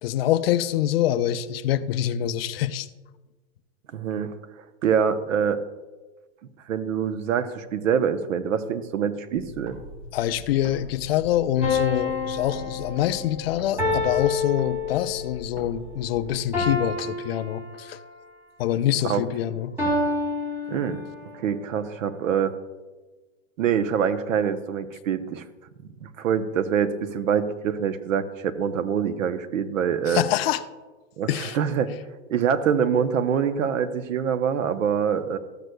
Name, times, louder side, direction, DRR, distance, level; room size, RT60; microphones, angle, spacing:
voice 1, 0.0-2.9 10.1-18.0 18.6-19.8 30.1-30.6 31.3-31.6, left 12 dB, 50° left, 12 dB, 0.5 m, -25 dB
voice 2, 3.9-4.3 4.8-5.6 6.7-9.8 19.0-19.2 20.7-21.0 21.3-22.5 23.6-25.4 26.0-30.2 31.2-31.9 32.3-35.4, right 7 dB, 80° right, 11 dB, 0.8 m, -25 dB
sound 1, 9.3-11.8 12.1-16.7, equal, 60° right, 3.0 m, -42 dB
sound 2, 11.6-15.3 16.5-18.1 19.8-21.3, left 3 dB, 5° right, 2.8 m, -28 dB
13.5 x 7.9 x 2.2 m, 1.2 s
supercardioid pair, 150°, 38 cm